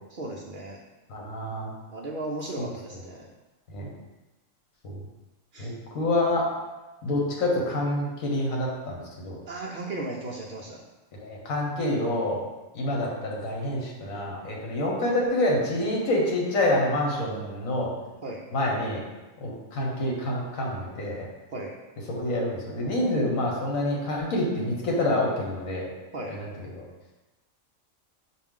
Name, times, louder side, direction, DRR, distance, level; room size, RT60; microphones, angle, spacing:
voice 1, 0.1-0.8 1.9-3.3 5.5-5.7 9.5-10.8 18.2-18.4 21.5-21.7 26.1-26.3, right 2 dB, 65° right, -2 dB, 0.5 m, -35 dB
voice 2, 1.1-1.7 2.6-2.7 3.7-3.9 4.8-5.0 5.6-6.5 7.0-9.4 11.1-12.4 12.7-17.9 18.5-19.0 19.4-21.2 22.1-25.9 26.3-26.5 26.7-26.8, left 1 dB, 80° left, -2 dB, 1.4 m, -27 dB
5.9 x 2.4 x 3.6 m, 1.1 s
omnidirectional pair, 1.4 m